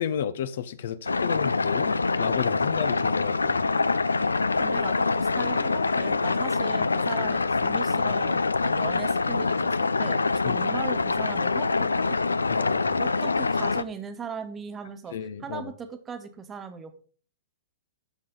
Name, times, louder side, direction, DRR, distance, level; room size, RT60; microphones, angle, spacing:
voice 1, 0.0-3.6 10.4-10.6 12.5-13.0 15.1-15.7, left 8 dB, 60° left, 0.7 m, -32 dB
sound 1, 1.1-13.8, left 3 dB, 85° left, 0.4 m, -25 dB
voice 2, 4.6-12.2 13.0-15.1 15.4-17.0, right 6 dB, 20° right, 1.3 m, -39 dB
11.5 x 6.3 x 3.9 m
figure-of-eight pair, 110°, 0 cm